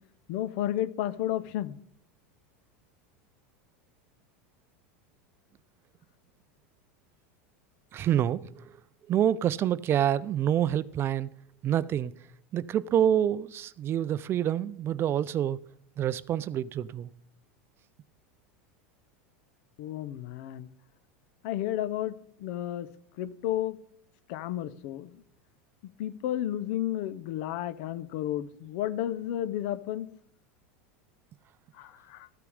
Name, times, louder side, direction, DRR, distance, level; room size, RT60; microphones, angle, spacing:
voice 1, 0.3-1.8 19.8-20.7 21.4-22.1 22.4-22.9 23.2-23.8 24.3-25.1 26.0-30.1 31.8-32.3, left 12 dB, 60° left, 0.8 m, -32 dB
voice 2, 7.9-8.7 9.1-11.3 11.6-12.1 12.5-15.6 16.0-17.1, right 10 dB, 35° right, 0.4 m, -27 dB
14.0 x 6.8 x 5.0 m
hypercardioid pair, 100°, 7 cm